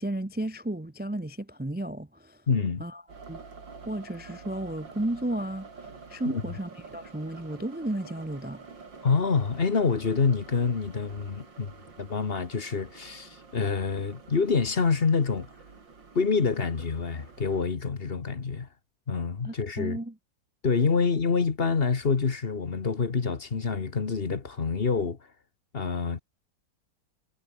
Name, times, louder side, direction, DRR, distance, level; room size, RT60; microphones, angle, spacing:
voice 1, 0.0-2.4 2.8-3.0 3.3-3.4 3.9-5.7 6.1-8.6 19.4-20.1, right 1 dB, 15° right, 0.3 m, -33 dB
voice 2, 2.5-2.8 6.2-6.4 9.0-11.7 12.0-15.5 16.1-18.7 19.1-20.0 20.6-25.2 25.7-26.2, left 5 dB, 35° left, 1.4 m, -26 dB
sound 1, 3.1-17.7, right 4 dB, 90° right, 4.0 m, -48 dB
omnidirectional pair, 2.0 m